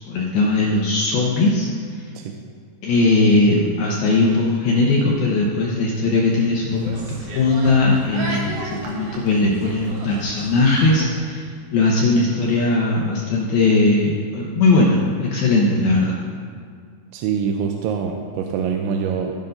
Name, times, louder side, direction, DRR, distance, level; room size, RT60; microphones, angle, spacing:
voice 1, 0.1-1.7 2.8-11.5 11.7-16.2, left 2 dB, 75° left, -3 dB, 2.2 m, -19 dB
sound 1, 6.7-11.0, right 2 dB, 70° right, 2.5 m, -34 dB
voice 2, 17.1-19.4, right 6 dB, 85° right, 2 dB, 3.0 m, -24 dB
16.0 x 5.4 x 3.9 m, 2.2 s
omnidirectional pair, 5.4 m